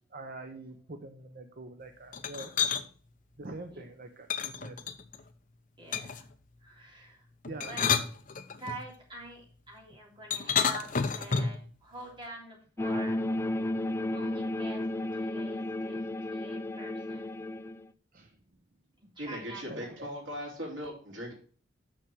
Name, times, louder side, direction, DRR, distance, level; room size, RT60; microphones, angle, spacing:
voice 1, 0.1-2.5 3.4-4.8 7.5-7.7 18.1-18.3 19.7-20.1, right 2 dB, 50° right, 6 dB, 0.9 m, -44 dB
sound 1, 2.1-2.8 4.3-5.2 5.9-6.3 7.4-8.8 10.3-11.6, left 6 dB, 45° left, 0.8 m, -30 dB
voice 2, 5.8-6.3 6.6-7.2 7.6-8.0 8.6-13.2 14.1-16.0 16.3-17.3 19.2-20.0, right 2 dB, 25° right, -2 dB, 3.5 m, -46 dB
sound 2, 12.8-17.9, left 1 dB, 15° left, 0.4 m, -33 dB
voice 3, 19.2-21.3, equal, 80° right, -1 dB, 3.4 m, -39 dB
6.4 x 6.4 x 6.2 m, 0.43 s
head